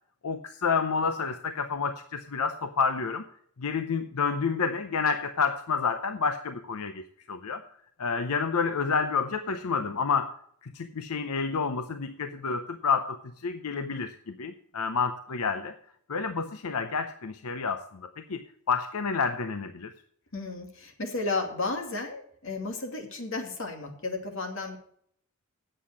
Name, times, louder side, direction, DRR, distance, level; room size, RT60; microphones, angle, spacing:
voice 1, 0.2-3.2 3.6-7.6 8.0-10.4 10.6-15.7 16.1-19.9, left 5 dB, 90° left, 9 dB, 0.7 m, -29 dB
voice 2, 20.3-24.8, left 3 dB, 60° left, 3 dB, 2.3 m, -33 dB
8.5 x 7.7 x 7.5 m, 0.65 s
head